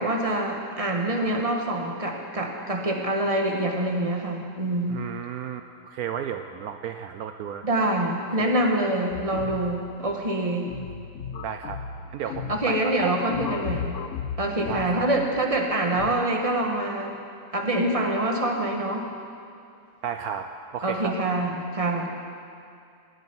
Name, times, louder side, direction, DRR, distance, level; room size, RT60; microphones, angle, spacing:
voice 1, 0.0-5.0 7.6-10.7 12.5-14.0 14.4-17.1 17.5-19.1 20.8-22.1, right 1 dB, 20° right, 1 dB, 1.8 m, -25 dB
voice 2, 4.9-7.6 8.4-8.5 11.4-11.8 12.1-13.1 14.7-15.1 20.0-21.1, right 8 dB, 75° right, 7 dB, 1.1 m, -33 dB
sound 1, 9.1-16.2, left 7 dB, 60° left, 1.0 m, -36 dB
17.5 x 8.2 x 9.9 m, 2.5 s
omnidirectional pair, 1.7 m